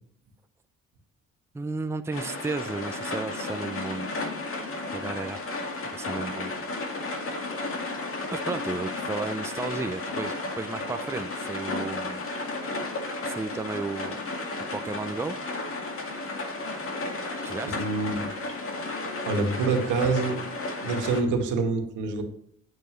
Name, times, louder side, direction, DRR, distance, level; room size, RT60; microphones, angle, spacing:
voice 1, 1.5-4.1 4.9-5.4 5.9-6.5 8.3-12.2 13.2-14.2 14.7-15.4 17.4-17.8, right 3 dB, 10° right, 9 dB, 0.5 m, -33 dB
sound 1, 2.1-21.2, left 2 dB, 45° left, 2.1 m, -33 dB
voice 2, 17.7-18.2 19.2-20.4 20.8-22.2, right 4 dB, 85° right, 3 dB, 1.9 m, -26 dB
9.0 x 7.9 x 3.2 m, 0.66 s
cardioid pair, 90°, 30 cm